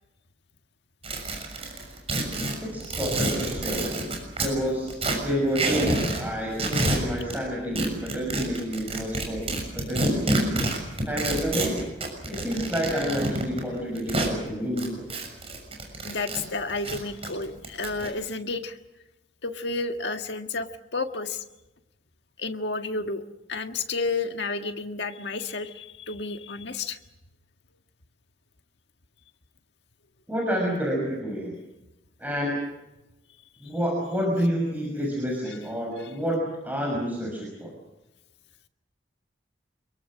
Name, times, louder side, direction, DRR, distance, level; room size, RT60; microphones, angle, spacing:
sound 1, 1.0-4.5 4.9-6.2 6.5-7.4 7.8-14.3 14.8-16.4 16.7-18.1, right 2 dB, 35° right, 6.7 m, -28 dB
voice 1, 2.7-3.9 4.4-4.9 5.2-9.4 9.7-11.8 12.3-15.1 30.3-31.5 32.2-32.5 33.6-37.7, equal, 10° right, -2 dB, 6.3 m, -29 dB
voice 2, 16.0-18.8 19.4-21.4 22.4-23.2 23.5-27.0 35.5-35.6 36.0-36.1, left 3 dB, 70° left, 6 dB, 1.7 m, -31 dB
27.5 x 23.0 x 6.3 m, 0.96 s
head